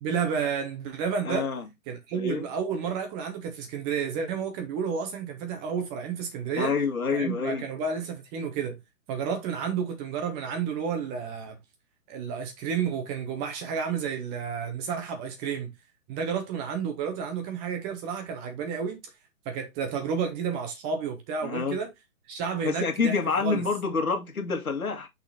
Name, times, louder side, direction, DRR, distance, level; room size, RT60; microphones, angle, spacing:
voice 1, 0.0-1.5 1.9-6.7 7.1-8.8 9.1-11.6 12.1-15.7 16.1-19.0 19.5-21.9 22.3-23.6, right 6 dB, 15° right, 0.8 m, -31 dB
voice 2, 1.2-1.7 2.1-2.5 6.6-7.7 21.4-21.8 22.6-25.1, left 5 dB, 80° left, 2.0 m, -27 dB
6.2 x 4.1 x 4.1 m
hypercardioid pair, 140°, 42 cm